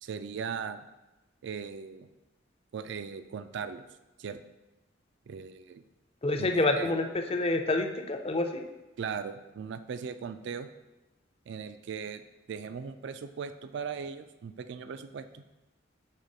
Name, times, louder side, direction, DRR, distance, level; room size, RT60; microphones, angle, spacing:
voice 1, 0.0-0.8 1.4-2.1 2.7-3.8 4.2-4.4 5.3-5.8 6.4-7.1 9.0-10.7 11.5-12.2 12.5-15.4, right 6 dB, 65° right, 11 dB, 0.3 m, -38 dB
voice 2, 6.2-8.6, left 2 dB, 30° left, 5 dB, 0.5 m, -28 dB
6.6 x 3.1 x 5.2 m, 1.0 s
head